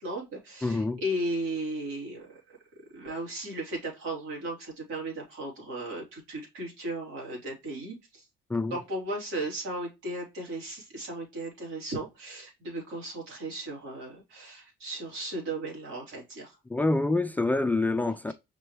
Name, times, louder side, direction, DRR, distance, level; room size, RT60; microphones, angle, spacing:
voice 1, 0.0-2.6 2.9-8.3 8.7-16.6 18.3-18.4, right 1 dB, 85° right, 3.2 m, -36 dB
voice 2, 0.6-1.0 8.5-8.8 16.7-18.3, left 2 dB, 10° left, 0.3 m, -26 dB
5.3 x 3.2 x 2.9 m
cardioid pair, 110°, 19 cm